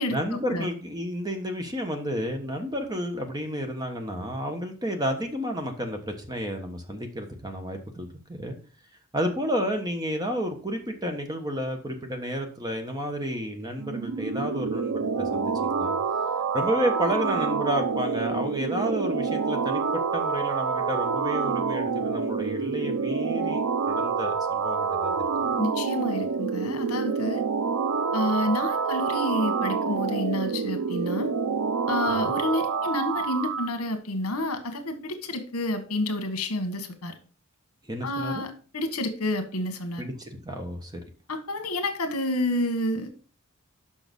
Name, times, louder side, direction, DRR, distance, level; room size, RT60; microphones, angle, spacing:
voice 1, 0.1-8.6 9.1-15.9 16.5-25.1 25.4-25.5 32.1-32.3 37.9-38.4 40.0-41.0, equal, 20° right, 5 dB, 1.2 m, -31 dB
sound 1, 13.8-33.7, right 5 dB, 85° right, 0.6 m, -27 dB
voice 2, 25.6-27.4 28.1-31.3 31.9-37.1 38.0-40.0 41.3-43.1, left 1 dB, 80° left, 7 dB, 1.4 m, -29 dB
6.3 x 5.8 x 5.3 m, 0.40 s
head